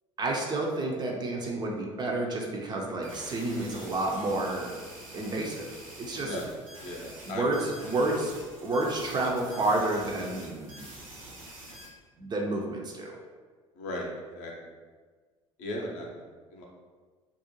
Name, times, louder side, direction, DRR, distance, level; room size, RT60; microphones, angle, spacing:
voice 1, 0.2-4.7 5.1-6.3 7.3-8.3 8.6-10.9 12.2-13.2, right 2 dB, 25° right, 0 dB, 0.4 m, -30 dB
sound 1, 3.0-11.9, right 1 dB, 85° right, 0.5 m, -46 dB
voice 2, 6.2-6.5 6.8-7.6 13.7-14.1 14.3-14.7 15.6-16.6, left 1 dB, 50° left, -1 dB, 0.6 m, -37 dB
2.4 x 2.1 x 2.8 m, 1.4 s
figure-of-eight pair, 65°, 17 cm